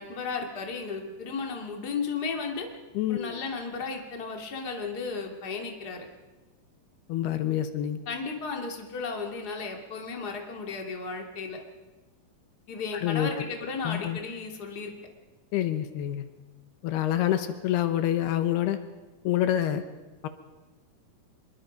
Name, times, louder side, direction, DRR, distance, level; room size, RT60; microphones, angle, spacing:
voice 1, 0.0-2.7 3.1-6.1 8.1-11.6 12.7-14.9, left 4 dB, 30° left, 2 dB, 2.5 m, -34 dB
voice 2, 2.9-3.4 7.1-8.0 13.0-13.3 13.8-14.2 15.5-16.2 16.8-18.8 19.2-19.8 20.2-20.3, left 12 dB, 80° left, 9 dB, 3.0 m, -27 dB
26.0 x 22.5 x 5.3 m, 1.2 s
omnidirectional pair, 4.6 m